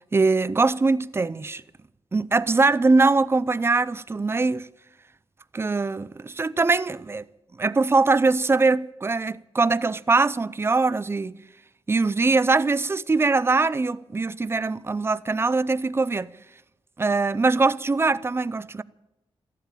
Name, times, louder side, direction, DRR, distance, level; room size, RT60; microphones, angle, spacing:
voice 1, 0.1-1.6 2.1-4.7 5.5-7.2 7.6-11.3 11.9-16.3 17.0-18.8, right 3 dB, 25° right, 0.5 m, -22 dB
13.5 x 11.5 x 9.0 m
wide cardioid pair, 100°, 10 cm